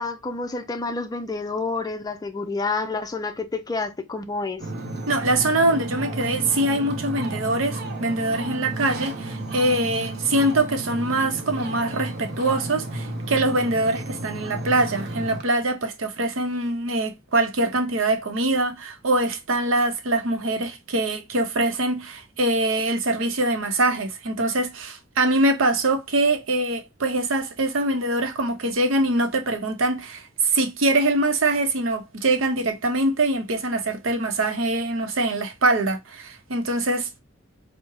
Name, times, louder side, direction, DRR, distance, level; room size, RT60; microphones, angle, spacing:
voice 1, 0.0-4.6, left 3 dB, 20° left, 0.4 m, -29 dB
Ocean, 4.6-15.4, right 1 dB, 55° right, 0.7 m, -33 dB
voice 2, 5.1-37.2, right 2 dB, 90° right, 0.7 m, -23 dB
4.7 x 2.1 x 3.0 m
head